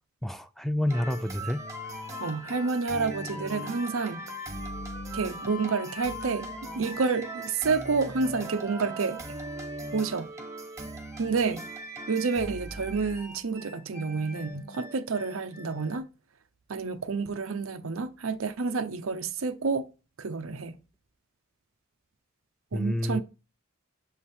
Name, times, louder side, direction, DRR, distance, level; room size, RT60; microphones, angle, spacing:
voice 1, 0.2-1.6 22.7-23.2, left 1 dB, ahead, 0.3 m, -29 dB
sound 1, 0.9-16.0, right 1 dB, 15° right, 1.2 m, -39 dB
voice 2, 2.2-4.2 5.1-9.2 9.9-10.3 11.2-11.6 12.1-16.1 16.7-19.9 20.2-20.8 22.7-23.2, right 4 dB, 90° right, 0.7 m, -29 dB
7.2 x 3.5 x 4.4 m
head